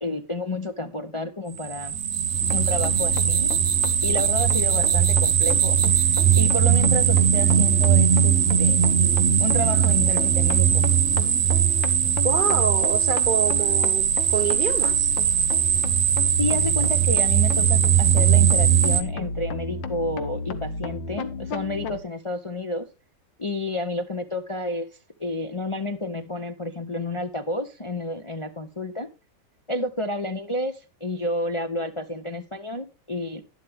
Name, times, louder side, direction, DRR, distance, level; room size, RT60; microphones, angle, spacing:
voice 1, 0.0-1.9 2.5-3.5 4.0-5.8 6.3-8.8 9.4-10.9 16.4-22.9 23.4-24.9 25.2-29.1 29.7-33.4, left 1 dB, 40° left, 0.4 m, -30 dB
sound 1, 1.6-19.0, right 9 dB, 50° right, 1.1 m, -20 dB
sound 2, 2.0-6.6, right 2 dB, 20° right, 2.5 m, -37 dB
sound 3, 2.4-22.0, left 3 dB, 80° left, 1.8 m, -33 dB
voice 2, 12.2-15.1, right 6 dB, 85° right, 0.4 m, -27 dB
11.5 x 11.5 x 3.5 m
omnidirectional pair, 2.0 m